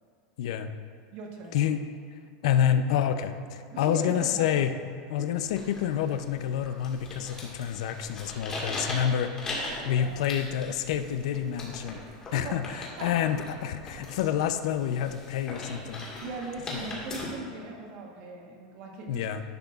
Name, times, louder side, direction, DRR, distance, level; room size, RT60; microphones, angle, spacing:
voice 1, 0.4-0.7 1.5-1.8 2.4-4.7 5.1-12.0 12.3-16.0 16.7-16.8 19.1-19.4, left 9 dB, 65° left, 8 dB, 0.6 m, -28 dB
voice 2, 1.1-1.7 3.7-4.5 5.2-5.4 9.9-10.2 12.4-12.6 13.0-13.1 16.2-19.3, right 2 dB, 40° right, 1 dB, 1.3 m, -39 dB
sound 1, 5.4-17.2, left 2 dB, 15° left, 1.8 m, -40 dB
11.5 x 10.5 x 2.4 m, 2.2 s
supercardioid pair, 170°, 4 cm